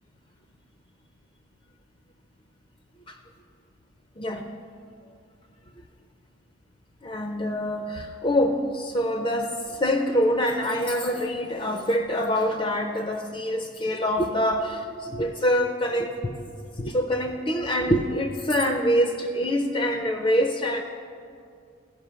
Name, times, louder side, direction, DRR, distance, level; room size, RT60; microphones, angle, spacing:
voice 1, 4.2-4.5 7.0-16.5 16.8-20.8, equal, 25° left, 5 dB, 0.5 m, -25 dB
15.5 x 5.4 x 5.6 m, 2.2 s
head